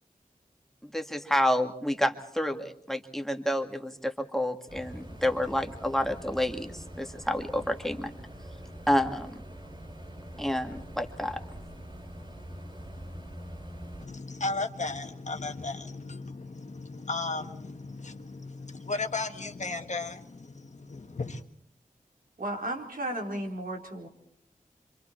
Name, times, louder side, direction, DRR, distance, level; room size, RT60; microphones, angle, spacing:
voice 1, 0.8-8.1 8.9-9.4 10.4-11.4, left 1 dB, ahead, 2.1 m, -29 dB
sound 1, 4.7-14.1, equal, 35° right, 3.7 m, -44 dB
voice 2, 14.0-21.4, left 3 dB, 55° left, 1.7 m, -35 dB
voice 3, 22.4-24.1, right 1 dB, 80° right, 4.3 m, -34 dB
27.0 x 26.5 x 4.6 m
wide cardioid pair, 80°, 14 cm